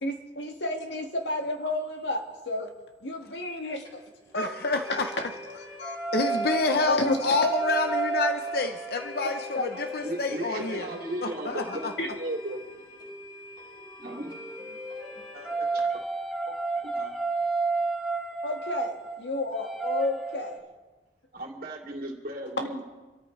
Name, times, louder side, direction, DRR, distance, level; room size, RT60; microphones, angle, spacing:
voice 1, 0.0-2.7 3.0-4.0 4.3-5.1 5.5-6.0 6.9-7.2 9.5-9.6 12.0-12.1 15.5-15.6 18.4-20.6, left 1 dB, 80° left, 3 dB, 1.9 m, -32 dB
sound 1, 3.6-3.7 3.8-3.9 4.3-4.4 4.8-15.5, left 1 dB, 30° left, 4.7 m, -46 dB
voice 2, 4.3-5.1 6.1-10.9 11.2-11.9, left 3 dB, 60° left, 6 dB, 0.7 m, -28 dB
sound 2, 4.4-12.6 13.8-20.6, right 4 dB, ahead, 1.5 m, -33 dB
voice 3, 9.7-12.6 14.0-14.4 14.6-14.7 15.3-15.8 16.5-16.6 16.8-17.1 21.3-22.8, right 1 dB, 55° right, 0 dB, 2.7 m, -36 dB
27.0 x 13.5 x 3.2 m, 1.2 s
head